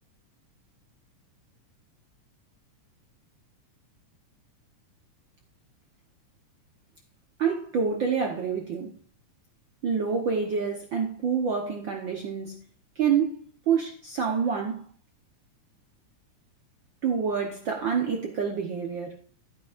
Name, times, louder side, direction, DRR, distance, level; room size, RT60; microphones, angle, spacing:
voice 1, 7.4-8.9 9.8-12.6 13.0-14.8 17.0-19.2, right 6 dB, 75° right, 1.0 m, -27 dB
11.5 x 10.0 x 2.5 m
omnidirectional pair, 3.5 m